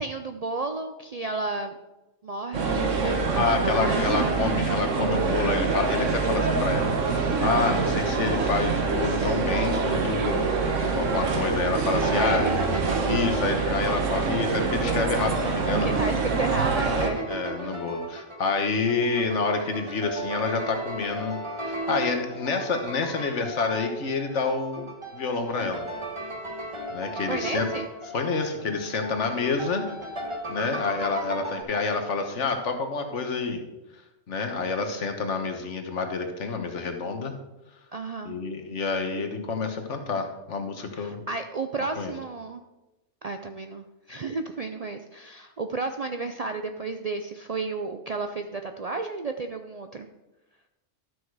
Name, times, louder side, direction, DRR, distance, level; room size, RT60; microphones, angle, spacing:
voice 1, 0.0-1.7 2.2-4.4 11.9-12.7 15.7-17.3 17.6-17.8 23.2-23.4 27.3-27.9 37.9-38.3 40.9-42.6 43.2-50.1, right 3 dB, 50° right, 6 dB, 0.4 m, -33 dB
sound 1, 2.5-17.1, right 4 dB, 85° right, 1.5 m, -25 dB
voice 2, 3.1-12.5 13.1-16.0 17.3-21.4 21.6-25.8 26.9-27.7 28.1-29.8 30.5-33.6 34.3-37.3 38.2-41.2 42.0-42.1, left 4 dB, 70° left, 5 dB, 1.5 m, -28 dB
sound 2, 11.9-31.6, right 1 dB, 25° right, 1.4 m, -36 dB
12.5 x 6.4 x 4.7 m, 1.0 s
omnidirectional pair, 1.3 m